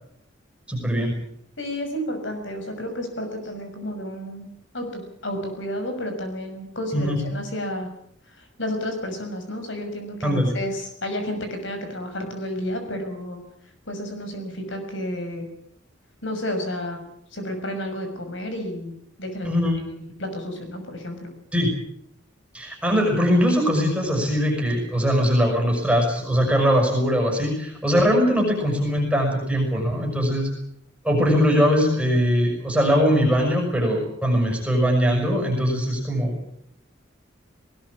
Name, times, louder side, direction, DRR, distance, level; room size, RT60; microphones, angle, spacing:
voice 1, 0.7-1.1 6.9-7.3 10.2-10.6 19.4-19.8 21.5-21.7 22.5-30.5 31.0-36.4, equal, 5° right, 0 dB, 6.2 m, -21 dB
voice 2, 1.6-4.5 4.7-7.9 8.3-13.4 13.8-15.5 16.2-17.0 17.3-18.9 19.2-19.5 20.2-21.3, left 1 dB, 70° left, 6 dB, 6.4 m, -31 dB
19.5 x 19.5 x 8.6 m, 0.73 s
head